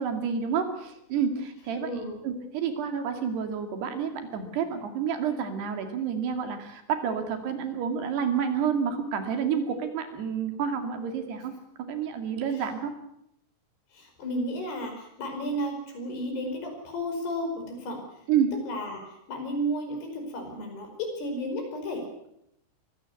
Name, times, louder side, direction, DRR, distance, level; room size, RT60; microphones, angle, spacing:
voice 1, 0.0-11.5 11.9-12.9 18.3-18.5, right 7 dB, 90° right, 6 dB, 4.5 m, -29 dB
voice 2, 1.8-2.2 12.5-12.6 13.9-18.0 18.7-22.3, equal, 85° left, 3 dB, 7.1 m, -33 dB
23.0 x 15.5 x 8.3 m, 0.77 s
omnidirectional pair, 4.6 m